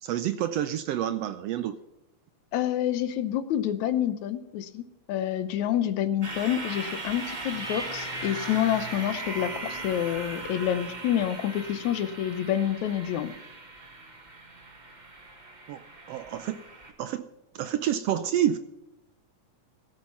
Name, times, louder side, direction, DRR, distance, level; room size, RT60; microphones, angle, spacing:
voice 1, 0.0-1.8 15.7-16.6 17.0-17.3 17.5-18.6, right 11 dB, 75° right, 12 dB, 1.5 m, -28 dB
voice 2, 2.5-13.3, left 11 dB, 75° left, 13 dB, 2.3 m, -28 dB
sound 1, 6.2-16.9, right 2 dB, 25° right, 1.0 m, -38 dB
16.5 x 9.0 x 5.7 m, 0.93 s
omnidirectional pair, 3.3 m